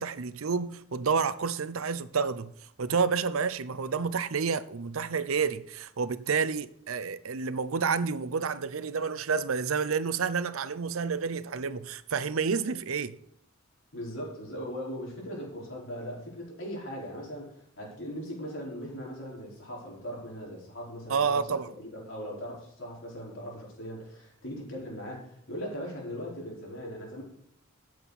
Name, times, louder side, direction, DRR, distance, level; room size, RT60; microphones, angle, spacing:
voice 1, 0.0-2.5 2.8-13.1 21.1-21.7, right 5 dB, 85° right, 0.7 m, -29 dB
voice 2, 13.9-27.2, equal, 65° left, 4.8 m, -39 dB
14.5 x 7.8 x 4.2 m
head